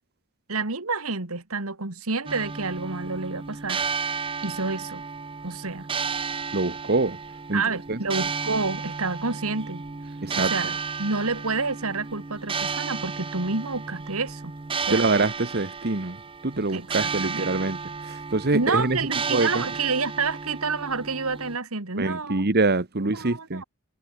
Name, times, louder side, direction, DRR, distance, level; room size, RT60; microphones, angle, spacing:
voice 1, 0.5-3.8 4.4-5.0 5.4-5.9 7.5-9.8 10.4-10.7 11.0-14.5 14.9-15.2 16.7-17.5 18.5-22.5 23.1-23.6, right 4 dB, 75° right, 2.3 m, -29 dB
sound 1, 2.3-21.6, right 5 dB, 25° right, 0.6 m, -33 dB
voice 2, 6.5-7.2 7.5-7.6 7.9-8.0 10.2-10.5 14.9-16.2 16.4-17.8 18.0-19.0 19.3-19.6 22.0-23.6, right 3 dB, 45° right, 1.4 m, -24 dB
head